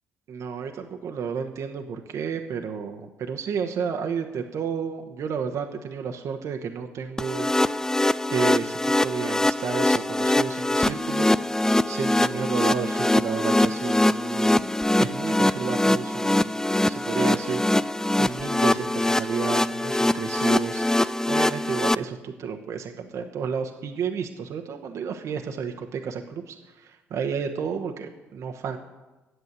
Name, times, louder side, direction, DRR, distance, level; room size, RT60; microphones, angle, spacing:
voice 1, 0.3-7.5 8.3-11.3 11.9-14.6 15.0-17.6 18.2-26.5 26.8-28.8, right 6 dB, 55° right, 5 dB, 1.1 m, -31 dB
sound 1, 7.2-22.0, left 1 dB, 10° left, 0.4 m, -23 dB
11.0 x 7.8 x 8.2 m, 1.1 s
hypercardioid pair, 45°, 6 cm